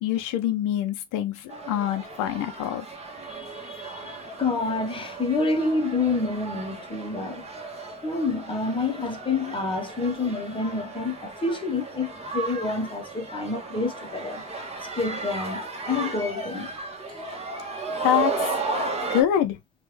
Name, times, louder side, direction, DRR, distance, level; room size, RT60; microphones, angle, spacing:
voice 1, 0.0-2.8 18.0-18.5 19.1-19.6, left 11 dB, 75° left, 0.6 m, -25 dB
sound 1, 1.5-19.2, right 3 dB, 20° right, 1.2 m, -35 dB
voice 2, 3.2-7.5 8.0-14.4 15.0-16.7 17.1-17.2, left 3 dB, 15° left, 1.0 m, -28 dB
3.2 x 2.4 x 3.2 m
cardioid pair, 100°, 32 cm